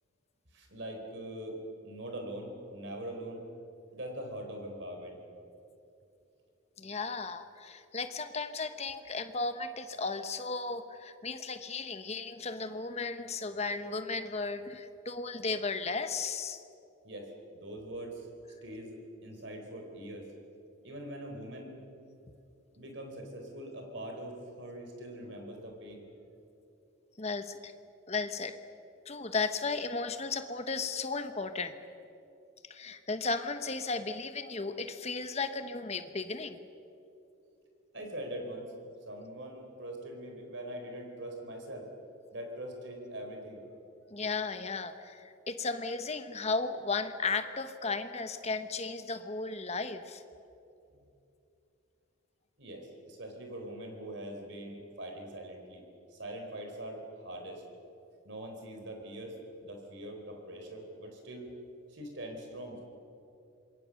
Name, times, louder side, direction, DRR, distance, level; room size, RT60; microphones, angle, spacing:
voice 1, 0.5-1.6 1.8-3.5 3.9-5.2 17.0-18.3 18.6-20.3 20.8-21.8 22.8-26.0 37.9-38.7 39.1-41.9 42.3-43.6 52.6-55.8 56.1-57.6 58.2-61.5 61.9-62.8, right 1 dB, 60° right, 3 dB, 4.3 m, -42 dB
voice 2, 6.8-16.6 27.2-27.7 28.1-28.6 29.0-31.7 32.7-36.6 44.1-50.2, left 4 dB, 30° left, 9 dB, 1.1 m, -35 dB
26.5 x 22.0 x 6.6 m, 2.8 s
head